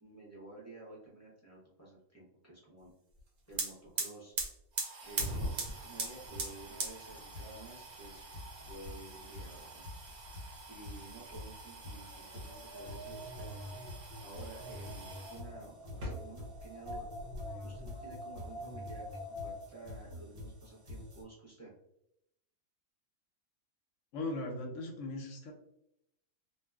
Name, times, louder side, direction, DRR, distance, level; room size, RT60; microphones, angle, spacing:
voice 1, 0.0-2.9 3.5-4.3 5.0-8.3 8.7-9.8 10.7-13.5 14.2-17.1 17.6-21.7, right 2 dB, 15° left, -6 dB, 0.6 m, -52 dB
sound 1, 3.2-3.3 3.5-15.4 15.9-16.7 16.9-17.9, right 3 dB, 85° right, 1.2 m, -42 dB
sound 2, 5.0-5.1 5.3-21.2, left 1 dB, 60° right, 1.2 m, -48 dB
Wind, 11.9-19.9, equal, 45° right, 0.9 m, -48 dB
voice 2, 24.1-25.5, left 2 dB, 65° left, 1 dB, 0.9 m, -38 dB
2.7 x 2.3 x 2.2 m, 0.80 s
omnidirectional pair, 1.5 m